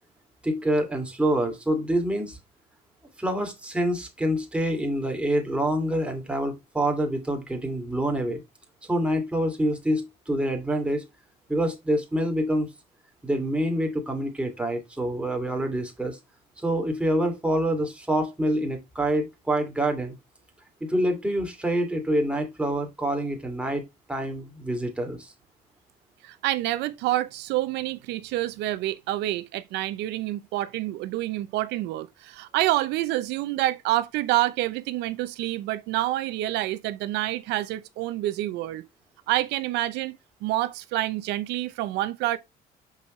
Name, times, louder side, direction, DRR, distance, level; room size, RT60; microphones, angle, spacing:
voice 1, 0.4-2.4 3.2-8.4 8.9-11.0 11.5-12.7 13.2-16.2 16.6-20.2 20.8-23.8 24.1-25.3, right 1 dB, 5° right, 2.6 m, -26 dB
voice 2, 26.2-38.8 39.3-40.2 40.4-42.4, right 16 dB, 90° right, 0.6 m, -27 dB
6.4 x 5.4 x 3.2 m
cardioid pair, 110°, 17 cm